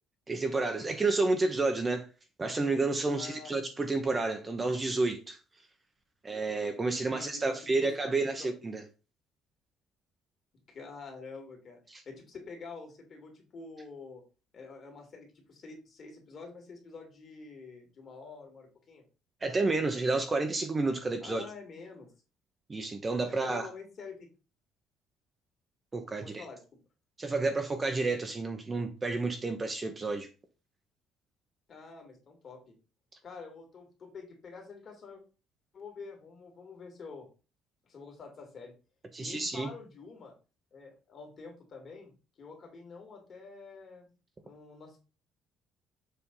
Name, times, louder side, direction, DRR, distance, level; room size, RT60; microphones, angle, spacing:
voice 1, 0.3-2.1 2.4-5.4 6.2-8.8 11.9-12.0 19.4-21.4 22.7-23.7 25.9-26.4 27.2-30.3 39.1-39.7, right 3 dB, 20° right, 0.7 m, -30 dB
voice 2, 3.1-3.6 4.4-4.5 6.9-8.5 10.7-11.8 12.0-14.2 14.5-19.0 21.2-22.1 23.3-24.3 26.2-26.6 31.7-32.8 33.2-35.2 35.7-37.3 37.8-38.7 39.2-40.3 40.7-42.1 42.4-44.1 44.4-45.0, left 4 dB, 35° left, 2.4 m, -47 dB
7.1 x 3.5 x 5.3 m
cardioid pair, 160°, 0 cm